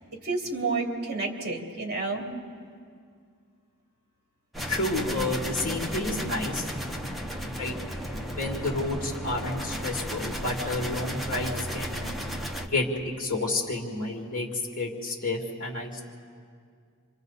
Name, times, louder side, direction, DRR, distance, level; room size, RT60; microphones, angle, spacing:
voice 1, 0.2-2.3, right 3 dB, 45° right, 0 dB, 2.8 m, -30 dB
sound 1, 4.5-12.7, equal, ahead, 1.0 m, -34 dB
voice 2, 4.7-6.6 7.6-7.7 8.4-12.1 12.7-14.5 14.8-16.0, left 2 dB, 40° left, 0 dB, 2.5 m, -30 dB
27.5 x 24.5 x 4.1 m, 2.2 s
head